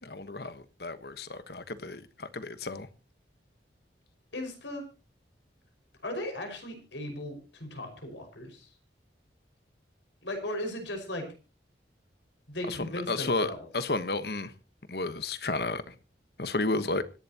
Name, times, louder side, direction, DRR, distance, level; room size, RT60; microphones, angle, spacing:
voice 1, 0.0-2.9 12.7-14.5 14.9-15.9 16.4-17.0, left 3 dB, 60° left, 1.2 m, -32 dB
voice 2, 4.3-4.8 6.0-8.7 10.2-11.3 12.5-13.7, left 1 dB, 85° left, 5.4 m, -37 dB
25.5 x 11.0 x 2.9 m
head